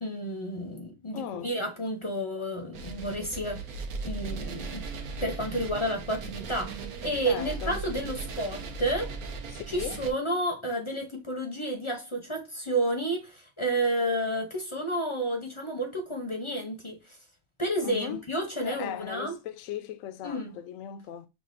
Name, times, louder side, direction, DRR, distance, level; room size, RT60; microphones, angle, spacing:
voice 1, 0.0-3.6 4.0-4.9 5.2-9.1 9.7-17.2 17.6-19.3 20.2-20.5, right 1 dB, 30° left, 0.6 m, -31 dB
voice 2, 1.1-1.5 7.2-7.8 9.5-10.0 17.8-18.2 18.6-21.3, left 10 dB, 70° left, 0.9 m, -38 dB
sound 1, 2.7-10.1, right 4 dB, 75° right, 1.1 m, -38 dB
6.0 x 2.4 x 2.6 m
omnidirectional pair, 1.6 m